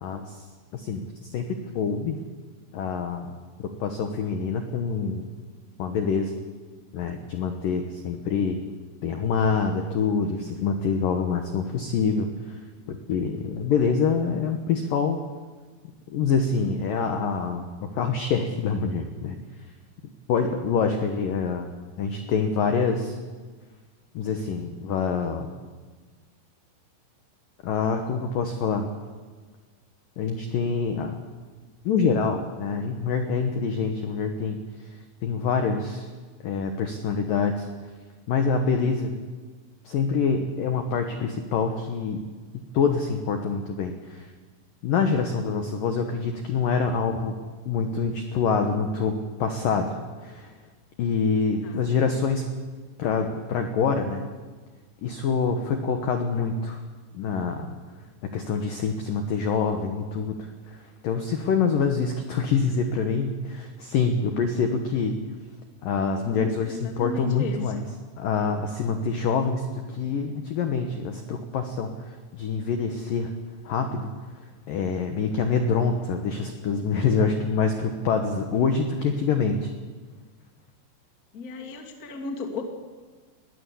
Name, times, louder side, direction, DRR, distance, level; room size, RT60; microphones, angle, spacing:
voice 1, 0.0-0.4 0.7-1.5 1.8-2.2 2.7-3.3 3.8-5.3 5.8-6.4 6.9-8.6 9.0-12.6 12.9-15.2 16.1-17.7 17.9-19.4 20.3-21.7 22.0-23.2 24.1-25.5 27.6-28.9 30.2-31.2 31.8-34.6 35.2-36.1 36.4-37.7 38.3-39.2 39.8-42.2 42.5-44.3 44.8-47.4 47.7-49.9 50.2-50.5 51.0-52.5 53.0-54.3 55.0-56.8 57.1-57.8 58.2-65.2 65.8-67.8 68.2-73.3 73.6-74.1 74.7-79.7, left 5 dB, 80° left, 5 dB, 2.0 m, -26 dB
voice 2, 51.6-51.9 66.2-67.7 81.3-82.6, left 3 dB, 45° left, 2 dB, 1.2 m, -35 dB
21.0 x 15.5 x 8.4 m, 1.4 s
omnidirectional pair, 5.9 m